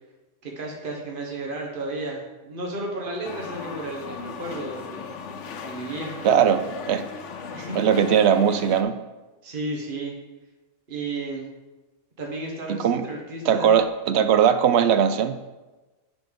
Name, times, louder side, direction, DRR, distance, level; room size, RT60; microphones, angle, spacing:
voice 1, 0.4-5.1 5.6-6.2 7.5-7.8 9.4-10.1 10.9-11.5 12.2-13.8, right 2 dB, 45° right, -1 dB, 1.5 m, -33 dB
sound 1, 3.2-8.8, left 5 dB, 80° left, 1.0 m, -37 dB
voice 2, 6.2-7.0 7.7-8.9 12.7-13.1 13.5-15.4, right 8 dB, 70° right, 11 dB, 0.8 m, -20 dB
9.6 x 4.2 x 5.2 m, 1.1 s
omnidirectional pair, 1.2 m